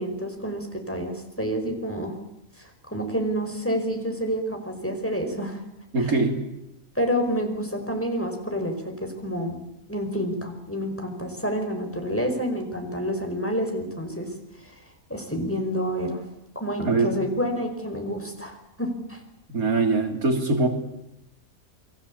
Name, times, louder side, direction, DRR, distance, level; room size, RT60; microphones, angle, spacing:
voice 1, 0.0-2.2 2.6-5.6 6.0-6.1 6.9-9.6 9.9-14.3 15.1-16.2 16.5-19.2, equal, 10° left, 4 dB, 5.3 m, -28 dB
voice 2, 5.9-6.4 16.9-17.2 19.5-20.7, right 3 dB, 90° right, 5 dB, 3.7 m, -22 dB
29.5 x 23.0 x 8.7 m, 0.85 s
omnidirectional pair, 1.5 m